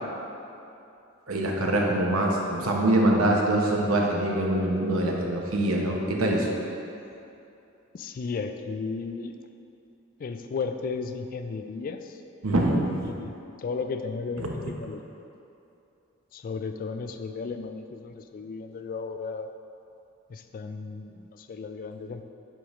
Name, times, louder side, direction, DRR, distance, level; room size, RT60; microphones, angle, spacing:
voice 1, 1.3-6.5 12.4-13.1 14.4-14.5, right 1 dB, 85° right, -1 dB, 0.9 m, -24 dB
voice 2, 7.9-9.4 10.2-12.2 13.0-15.2 16.3-19.5 20.3-22.2, left 4 dB, 40° left, 7 dB, 0.3 m, -34 dB
7.7 x 4.9 x 3.1 m, 2.7 s
head